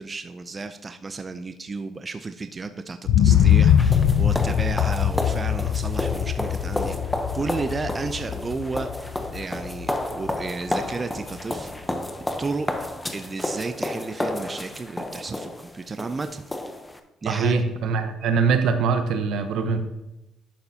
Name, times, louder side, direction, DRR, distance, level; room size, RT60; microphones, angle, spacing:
voice 1, 0.0-11.7 12.4-16.4 17.2-17.6, right 3 dB, 25° right, 9 dB, 0.4 m, -33 dB
sound 1, 3.0-10.9 11.4-11.5, left 9 dB, 80° left, 0.5 m, -22 dB
sound 2, 3.3-17.0, left 1 dB, 10° left, 0.8 m, -31 dB
voice 2, 17.3-19.8, right 5 dB, 75° right, 8 dB, 0.9 m, -22 dB
11.5 x 6.5 x 2.8 m, 0.94 s
cardioid pair, 90°, 0 cm